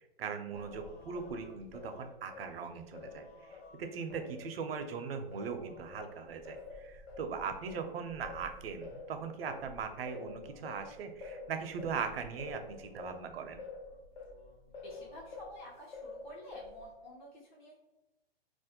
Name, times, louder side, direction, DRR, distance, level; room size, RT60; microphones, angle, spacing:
voice 1, 0.2-3.3 3.8-13.6, right 6 dB, 75° right, 6 dB, 0.5 m, -40 dB
Singing, 0.5-4.9 5.3-15.6 15.9-16.9, left 3 dB, 85° left, 0.8 m, -49 dB
voice 2, 14.8-17.8, left 1 dB, 50° left, -4 dB, 0.8 m, -50 dB
2.4 x 2.1 x 2.7 m, 0.99 s
hypercardioid pair, 145°, 30 cm